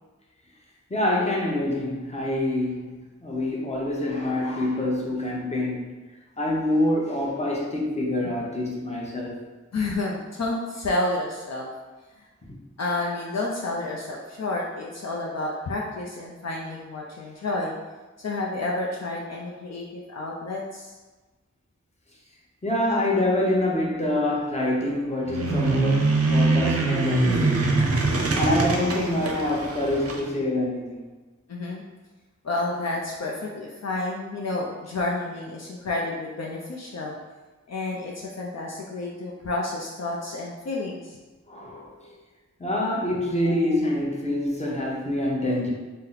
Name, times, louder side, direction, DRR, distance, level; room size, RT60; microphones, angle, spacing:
voice 1, 0.9-5.9 6.4-9.4 12.5-12.6 22.6-28.0 28.4-31.0 41.5-42.2 42.6-45.7, left 1 dB, 20° left, -3 dB, 0.8 m, -26 dB
voice 2, 9.7-11.7 12.8-17.7 18.2-21.0 31.5-31.8 32.4-37.2 37.7-41.2, left 2 dB, 60° left, -3 dB, 0.5 m, -30 dB
sound 1, 25.2-30.2, right 3 dB, 50° right, 0.5 m, -23 dB
2.7 x 2.1 x 3.9 m, 1.2 s
wide cardioid pair, 45°, 29 cm